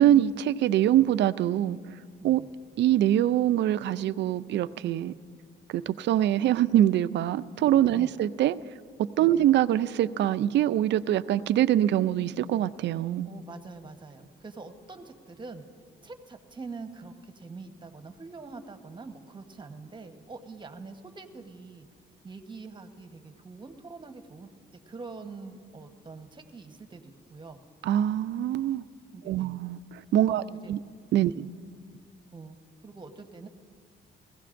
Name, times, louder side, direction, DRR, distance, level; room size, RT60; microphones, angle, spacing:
voice 1, 0.0-1.8 2.2-2.4 2.8-5.1 5.7-8.6 9.2-13.3 27.8-28.8 29.3-30.8 31.1-31.4, right 12 dB, 65° right, 0.4 m, -24 dB
voice 2, 13.2-15.6 16.0-21.9 22.2-24.5 24.9-27.6 29.1-29.5 30.2-30.7 31.2-31.5 32.3-32.6 32.8-33.5, right 4 dB, 25° right, 1.0 m, -44 dB
21.0 x 16.0 x 2.5 m
cardioid pair, 90°, 20 cm